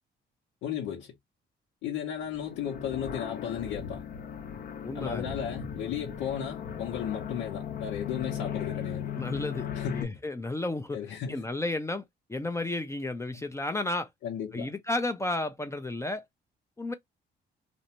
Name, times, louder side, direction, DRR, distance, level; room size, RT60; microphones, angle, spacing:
voice 1, 0.6-1.1 1.8-4.0 4.9-9.2 9.7-10.2 10.9-11.4 13.3-13.4 14.2-14.7, left 8 dB, 90° left, 0.7 m, -35 dB
sound 1, 2.2-10.0, left 8 dB, 50° left, 0.7 m, -37 dB
voice 2, 4.8-5.4 9.2-9.6 9.9-11.0 11.3-12.0 12.3-14.1 14.5-16.2 16.8-16.9, left 2 dB, 15° left, 0.5 m, -32 dB
2.6 x 2.1 x 2.8 m
cardioid pair, 90°, 20 cm